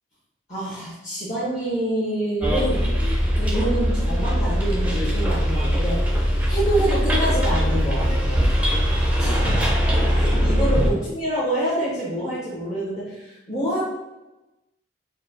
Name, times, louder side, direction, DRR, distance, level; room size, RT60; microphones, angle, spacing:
voice 1, 0.5-2.9 3.4-6.0 6.5-8.4 9.2-9.6 10.1-13.8, right 1 dB, 40° left, -8 dB, 1.2 m, -26 dB
Bus, 2.4-10.9, equal, 10° right, 0.6 m, -21 dB
4.2 x 2.2 x 4.0 m, 1.0 s
head